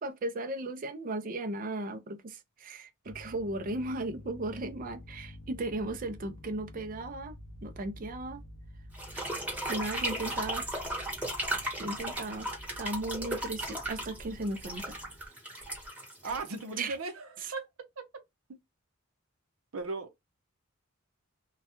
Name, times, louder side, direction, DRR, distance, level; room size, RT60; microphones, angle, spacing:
voice 1, 0.0-8.4 9.7-10.7 11.8-12.5 12.8-15.0 16.8-17.0 17.4-17.5, right 2 dB, 40° right, 0.4 m, -36 dB
sound 1, 3.0-15.2, left 1 dB, 50° left, 0.5 m, -49 dB
sound 2, 8.9-16.9, right 1 dB, 10° right, 1.0 m, -36 dB
voice 2, 16.2-17.7 18.0-18.1 19.7-20.2, right 3 dB, 90° right, 0.6 m, -37 dB
2.3 x 2.1 x 2.8 m
head